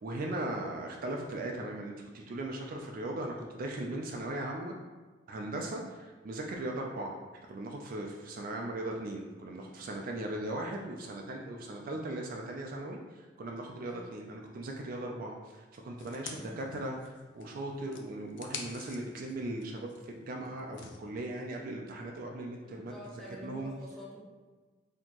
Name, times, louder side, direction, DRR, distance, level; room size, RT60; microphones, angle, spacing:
voice 1, 0.0-4.8 5.3-5.8 6.2-7.2 7.5-13.0 13.4-22.9 23.4-23.7, right 1 dB, 50° right, 1 dB, 0.4 m, -38 dB
sound 1, 16.0-17.5 17.9-21.0, left 6 dB, 70° left, 0.4 m, -47 dB
voice 2, 16.3-16.8 22.6-24.2, equal, ahead, -6 dB, 0.7 m, -48 dB
4.2 x 2.8 x 2.9 m, 1.3 s
head